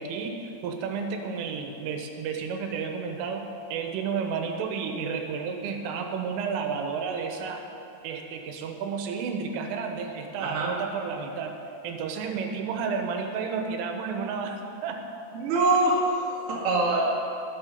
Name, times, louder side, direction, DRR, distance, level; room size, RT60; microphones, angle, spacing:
voice 1, 0.0-7.7 8.0-11.6 11.8-15.1, right 5 dB, 85° right, 4 dB, 3.5 m, -31 dB
voice 2, 10.4-10.7 15.3-17.0, right 2 dB, 45° right, -5 dB, 2.0 m, -24 dB
19.0 x 6.9 x 5.3 m, 2.8 s
omnidirectional pair, 5.6 m